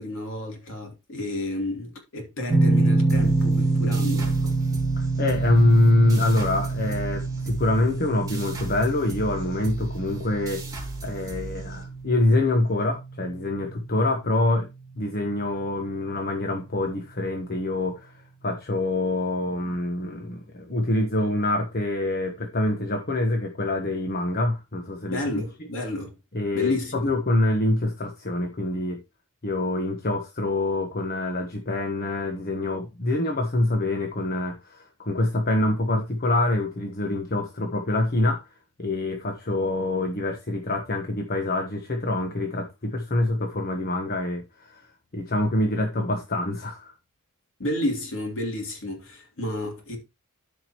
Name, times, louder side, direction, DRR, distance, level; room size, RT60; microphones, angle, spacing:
voice 1, 0.0-4.6 25.1-26.1 26.5-27.1 47.6-50.0, left 1 dB, 60° left, 3.1 m, -31 dB
sound 1, 2.5-15.4, right 2 dB, ahead, 2.8 m, -27 dB
sound 2, 3.1-12.3, right 2 dB, 15° right, 3.7 m, -38 dB
voice 2, 5.0-10.6 11.0-14.7 15.0-25.4 26.3-29.0 29.4-38.5 38.8-44.9 45.1-46.9, left 2 dB, 45° left, 1.2 m, -25 dB
13.5 x 5.1 x 3.0 m
head